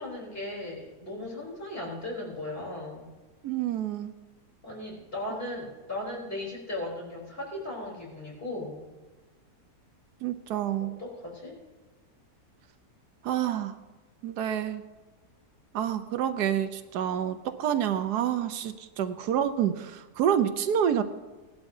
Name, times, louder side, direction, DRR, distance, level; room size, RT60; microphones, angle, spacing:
voice 1, 0.0-3.1 4.6-8.9 10.8-11.6 15.8-15.9, left 1 dB, 35° left, -3 dB, 3.8 m, -37 dB
voice 2, 3.4-4.1 10.2-10.9 13.2-13.7 14.2-14.8 15.7-21.0, right 9 dB, 85° right, 10 dB, 1.3 m, -28 dB
18.0 x 11.5 x 2.7 m, 1.2 s
omnidirectional pair, 1.7 m